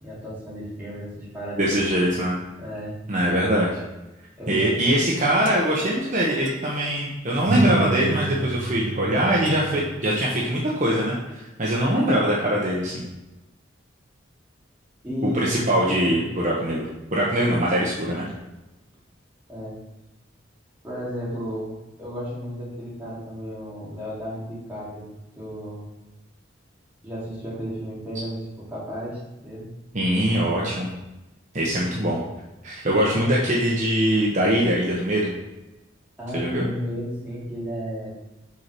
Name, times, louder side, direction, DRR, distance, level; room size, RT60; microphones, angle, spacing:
voice 1, 0.0-2.0 2.6-3.0 4.4-4.8 15.0-15.6 19.5-19.8 20.8-21.7 22.0-25.1 25.4-25.8 27.0-29.7 36.2-38.1, equal, 10° right, -8 dB, 2.7 m, -33 dB
voice 2, 1.6-2.4 3.1-3.8 4.5-13.1 15.2-16.8 17.1-18.3 29.9-30.9 31.5-32.2 32.6-35.3 36.3-36.7, right 1 dB, 40° right, -4 dB, 1.1 m, -22 dB
sound 1, 4.9-6.1 6.5-6.6 7.5-10.0, right 3 dB, 65° right, 0.7 m, -29 dB
6.0 x 4.5 x 6.1 m, 0.99 s
head